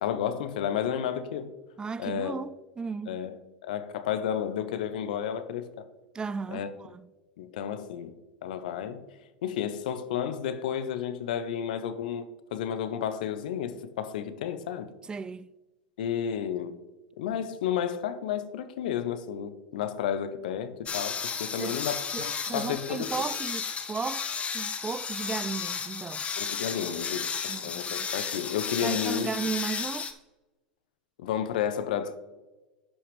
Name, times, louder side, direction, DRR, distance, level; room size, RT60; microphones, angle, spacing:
voice 1, 0.0-1.5 2.0-2.4 3.1-3.4 3.6-5.9 6.5-6.7 7.4-8.1 8.4-9.0 9.4-14.9 16.0-16.8 17.2-23.3 26.4-29.3 31.2-32.2, left 9 dB, 70° left, 0.8 m, -32 dB
voice 2, 1.8-3.2 6.1-7.1 15.1-15.5 21.6-21.8 22.1-24.3 24.5-26.3 27.5-28.1 28.8-30.1, right 5 dB, 20° right, 0.3 m, -35 dB
sound 1, 20.9-30.1, left 6 dB, 25° left, 0.9 m, -33 dB
11.0 x 5.7 x 3.3 m
hypercardioid pair, 90°, 5 cm